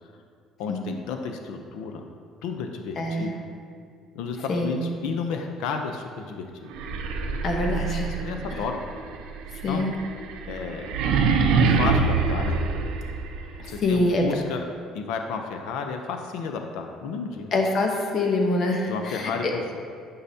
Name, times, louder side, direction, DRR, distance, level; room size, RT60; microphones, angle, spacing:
voice 1, 0.6-2.0 2.4-3.4 4.1-6.7 8.2-8.8 9.7-9.8 10.5-10.9 11.6-12.6 13.7-14.6 14.9-17.5 18.9-19.8, left 5 dB, 85° left, 4 dB, 0.6 m, -32 dB
voice 2, 3.0-3.3 4.5-4.8 7.4-8.2 9.6-9.9 13.8-14.3 17.5-19.3, left 2 dB, 35° left, 1 dB, 0.8 m, -25 dB
sound 1, 6.7-13.6, right 4 dB, 90° right, 0.6 m, -25 dB
11.5 x 5.6 x 2.7 m, 2.2 s
cardioid pair, 170°, 0 cm